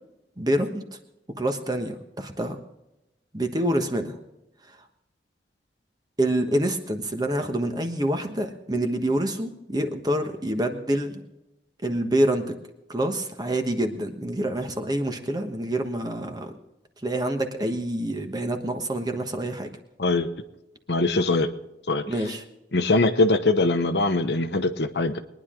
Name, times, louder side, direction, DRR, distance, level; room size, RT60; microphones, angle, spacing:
voice 1, 0.4-1.0 1.4-2.6 3.3-4.2 4.7-4.8 6.2-11.2 11.8-12.6 12.9-16.5 17.0-19.7 22.1-22.4, right 1 dB, 20° right, 6 dB, 1.2 m, -27 dB
voice 2, 20.9-21.5 21.9-22.0 22.7-25.2, left 2 dB, 70° left, 9 dB, 1.0 m, -22 dB
22.0 x 10.5 x 3.8 m, 0.91 s
head